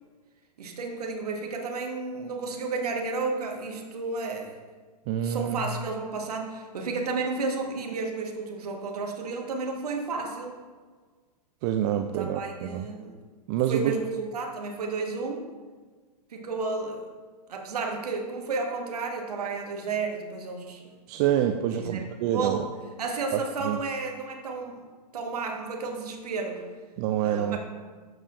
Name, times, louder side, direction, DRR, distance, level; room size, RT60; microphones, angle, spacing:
voice 1, 0.6-4.6 5.2-10.5 12.2-13.1 13.7-15.5 16.3-17.1 17.5-20.9 21.8-22.7 23.0-24.9 25.1-26.6 27.2-27.6, right 3 dB, 65° right, 2 dB, 1.3 m, -32 dB
voice 2, 5.1-5.6 11.6-12.8 13.5-14.0 21.1-22.6 23.3-23.8 27.0-27.6, right 11 dB, 30° right, 6 dB, 0.4 m, -27 dB
12.0 x 6.8 x 2.5 m, 1.5 s
figure-of-eight pair, 115°, 21 cm